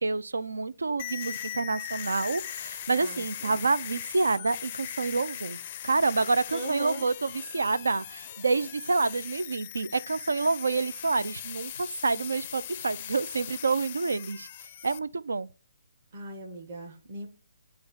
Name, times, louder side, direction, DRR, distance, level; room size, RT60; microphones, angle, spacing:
voice 1, 0.0-5.6 5.8-14.5 14.8-15.5, right 3 dB, 75° right, 0.4 m, -28 dB
sound 1, 1.0-15.0, left 11 dB, 35° left, 0.4 m, -40 dB
voice 2, 3.0-3.5 6.5-7.1 16.1-17.3, right 2 dB, 40° right, 1.4 m, -38 dB
8.4 x 2.9 x 4.2 m
figure-of-eight pair, 140°, 0 cm